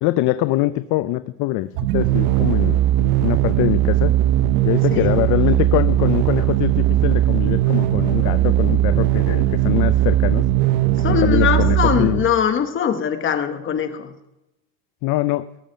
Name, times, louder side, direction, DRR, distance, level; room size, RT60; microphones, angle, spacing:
voice 1, 0.0-2.8 3.2-4.1 4.6-10.4 11.1-12.2 15.0-15.5, left 17 dB, 45° left, 13 dB, 0.4 m, -23 dB
sound 1, 1.8-12.5, right 13 dB, 55° right, 0.8 m, -18 dB
voice 2, 11.0-14.1, left 8 dB, 30° left, 8 dB, 1.0 m, -21 dB
19.0 x 7.2 x 5.1 m, 0.92 s
cardioid pair, 155°, 42 cm